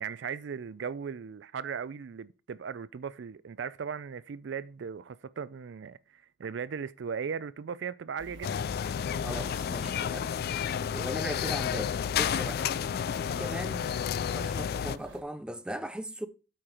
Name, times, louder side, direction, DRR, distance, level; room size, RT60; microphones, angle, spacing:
voice 1, 0.0-8.6, right 6 dB, 70° right, 0.4 m, -37 dB
sound 1, 8.2-15.2, right 2 dB, 90° right, 1.3 m, -49 dB
sound 2, 8.4-15.0, left 8 dB, 55° left, 0.3 m, -31 dB
voice 2, 9.2-10.3 10.9-12.6 13.2-13.9 14.3-16.3, right 1 dB, 5° right, 0.6 m, -38 dB
8.7 x 4.6 x 4.9 m
head